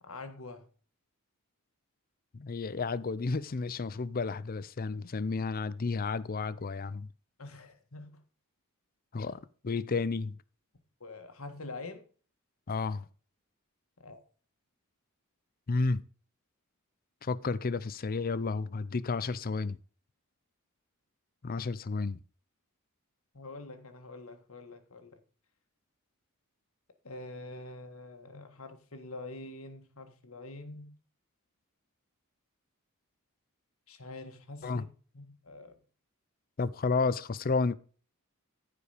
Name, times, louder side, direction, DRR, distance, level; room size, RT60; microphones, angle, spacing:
voice 1, 0.0-0.7 7.4-8.2 9.2-9.4 11.0-12.1 14.0-14.2 23.3-25.2 27.0-30.9 33.9-34.9 35.1-35.7, left 2 dB, 65° left, 1.7 m, -45 dB
voice 2, 2.3-7.1 9.1-9.4 9.6-10.4 12.7-13.0 15.7-16.0 17.2-19.8 21.4-22.2 34.6-34.8 36.6-37.8, left 4 dB, 40° left, 0.5 m, -31 dB
14.5 x 5.0 x 5.1 m
head